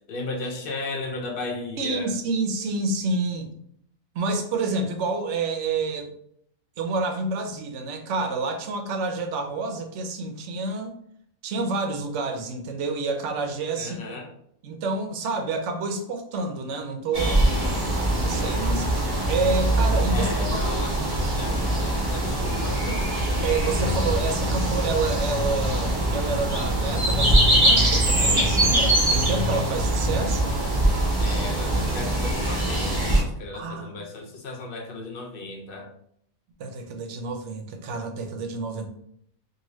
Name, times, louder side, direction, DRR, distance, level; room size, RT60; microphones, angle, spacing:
voice 1, 0.1-2.1 13.8-14.3 20.1-21.0 21.4-21.6 22.1-23.1 31.2-35.9, left 3 dB, 60° left, 1 dB, 0.6 m, -35 dB
voice 2, 1.8-3.5 4.1-6.1 6.8-10.9 11.4-14.0 14.6-17.6 18.1-20.7 23.4-30.6 33.5-34.0 36.6-38.9, right 3 dB, 70° right, 5 dB, 0.9 m, -29 dB
sound 1, 17.1-33.2, right 1 dB, 25° right, 0.5 m, -23 dB
2.8 x 2.6 x 3.0 m, 0.67 s
omnidirectional pair, 1.4 m